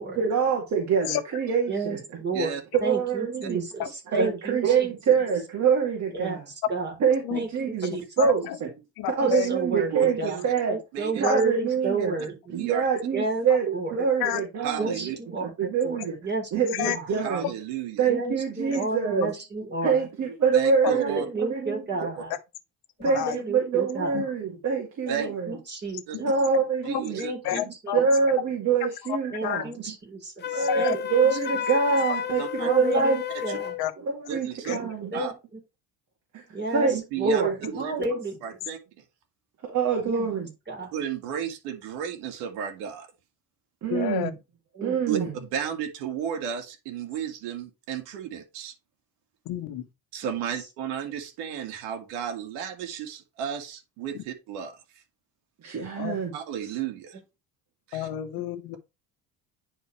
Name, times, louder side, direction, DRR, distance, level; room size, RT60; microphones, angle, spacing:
voice 1, 0.2-2.0 2.7-3.6 4.1-6.4 7.0-8.7 9.1-10.8 11.1-12.1 12.5-15.1 15.4-16.2 16.5-17.5 18.0-19.3 19.8-22.1 23.0-25.6 26.2-27.2 27.9-29.7 30.5-33.2 34.0-35.1 36.3-36.4 36.7-37.5 39.6-40.5 43.8-44.3 44.8-45.3 55.6-56.3, right 6 dB, 45° right, 2.5 m, -25 dB
voice 2, 1.7-4.7 6.1-6.4 6.7-6.9 7.3-7.5 7.8-8.0 9.2-10.4 10.7-12.3 13.1-13.5 13.7-13.9 14.8-16.9 18.1-20.0 20.9-22.3 23.0-24.2 25.1-26.0 27.1-27.7 29.3-31.0 32.6-33.8 34.8-35.3 36.5-36.9 37.2-38.4 40.1-40.3 40.7-40.9 44.8-45.0, right 3 dB, 25° right, 4.0 m, -31 dB
voice 3, 8.2-8.6 9.0-9.5 11.2-11.4 13.5-13.6 14.2-14.4 16.7-17.0 17.4-17.5 20.8-20.9 23.0-23.4 24.1-24.3 26.1-26.3 26.9-27.0 27.4-28.0 29.4-29.6 30.6-31.0 33.8-33.9 34.7-34.8 43.9-44.3 49.4-49.9 54.1-54.2 56.0-56.2 57.9-58.8, left 12 dB, 70° left, 1.3 m, -30 dB
voice 4, 9.9-10.5 10.9-11.2 12.5-12.8 14.6-15.2 17.2-18.1 20.5-21.3 22.2-22.3 25.1-25.3 26.1-26.2 26.8-27.3 32.4-32.7 33.5-33.6 34.3-34.8 35.1-35.3 37.1-37.4 37.7-37.9 38.4-38.8 40.9-43.1 45.1-48.7 50.1-54.8 56.3-57.2 57.9-58.1, right 8 dB, 90° right, 2.0 m, -33 dB
Wind instrument woodwind instrument, 30.4-33.8, left 9 dB, 30° left, 0.5 m, -32 dB
10.0 x 4.3 x 3.2 m
cardioid pair, 115°, 38 cm